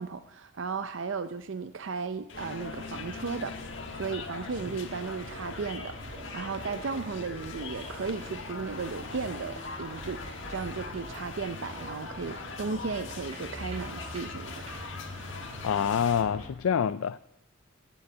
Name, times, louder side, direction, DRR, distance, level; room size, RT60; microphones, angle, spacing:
voice 1, 0.0-3.6 3.9-10.2 10.5-14.7, right 4 dB, 65° right, 11 dB, 0.5 m, -35 dB
sound 1, 2.3-16.2, left 4 dB, 60° left, 1.4 m, -42 dB
sound 2, 2.3-16.5, left 1 dB, 30° right, 3.5 m, -43 dB
voice 2, 15.6-17.2, left 7 dB, 85° left, 14 dB, 0.4 m, -26 dB
15.0 x 7.1 x 7.8 m, 0.80 s
head